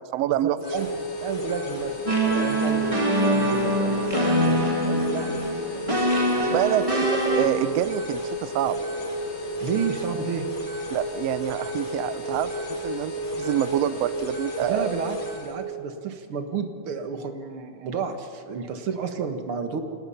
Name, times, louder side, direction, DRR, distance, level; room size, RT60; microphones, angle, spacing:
voice 1, 0.1-0.6 6.4-8.8 10.9-14.9, right 13 dB, 75° right, 14 dB, 1.5 m, -27 dB
sound 1, 0.6-15.5, equal, 85° left, 6.5 m, -32 dB
voice 2, 0.7-6.9 9.6-10.5 14.6-19.8, right 6 dB, 50° right, 6 dB, 2.1 m, -32 dB
sound 2, 2.1-7.5, right 1 dB, 10° right, 2.6 m, -24 dB
27.5 x 19.0 x 5.7 m, 2.3 s
omnidirectional pair, 3.7 m